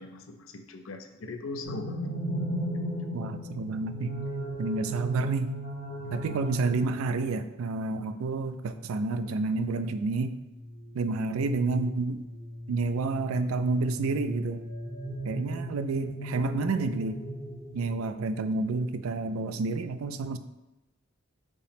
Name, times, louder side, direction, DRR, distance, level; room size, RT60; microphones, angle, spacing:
voice 1, 0.0-2.1 6.0-6.4, left 2 dB, 75° left, 6 dB, 0.5 m, -40 dB
sound 1, 1.6-7.3 10.5-18.2, equal, 50° left, 0.9 m, -36 dB
voice 2, 3.1-4.1 4.6-5.5 6.1-10.4 10.9-12.2 12.7-14.6 15.2-17.2 17.7-20.4, right 3 dB, 85° right, 10 dB, 0.4 m, -29 dB
5.3 x 2.1 x 4.9 m, 1.0 s
head